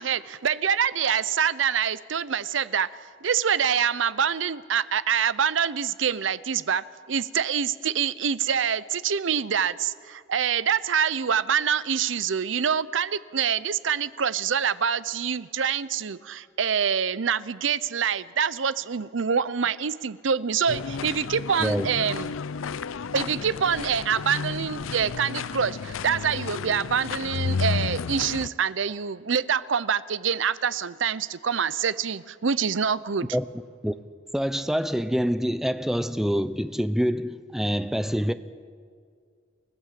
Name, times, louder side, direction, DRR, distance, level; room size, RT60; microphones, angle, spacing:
voice 1, 0.0-2.9 3.2-22.3 23.1-33.3, right 7 dB, 70° right, 0.6 m, -26 dB
sound 1, 20.7-28.5, left 5 dB, 90° left, 0.5 m, -32 dB
voice 2, 34.3-38.3, equal, ahead, 0.6 m, -26 dB
29.0 x 15.0 x 7.6 m
head